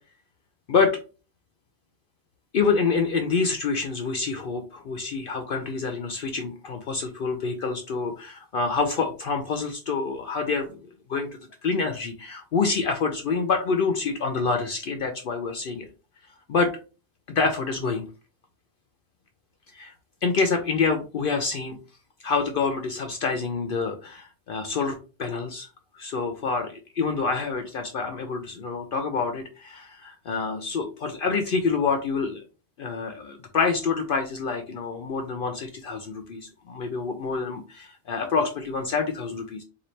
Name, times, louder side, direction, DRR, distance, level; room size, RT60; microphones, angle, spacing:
voice 1, 2.5-10.7 11.1-11.3 11.6-15.9 16.5-16.7 17.3-18.1 19.7-19.9 20.2-21.8 22.2-25.7 25.9-32.4 32.8-39.6, left 4 dB, 60° left, 5 dB, 0.7 m, -27 dB
4.1 x 2.6 x 3.1 m, 0.34 s
omnidirectional pair, 1.1 m